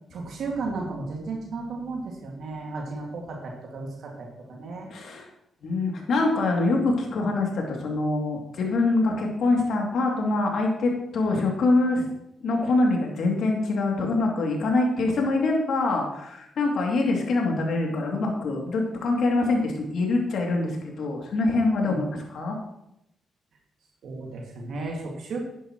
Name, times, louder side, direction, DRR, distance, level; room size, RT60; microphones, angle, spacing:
voice 1, 0.1-4.9 21.8-22.0 24.0-25.4, right 3 dB, 75° right, -1 dB, 2.1 m, -34 dB
voice 2, 4.9-5.3 5.6-12.0 12.4-22.6, left 2 dB, 75° left, 0 dB, 2.7 m, -24 dB
11.5 x 9.9 x 3.1 m, 0.82 s
cardioid pair, 85°, 0 cm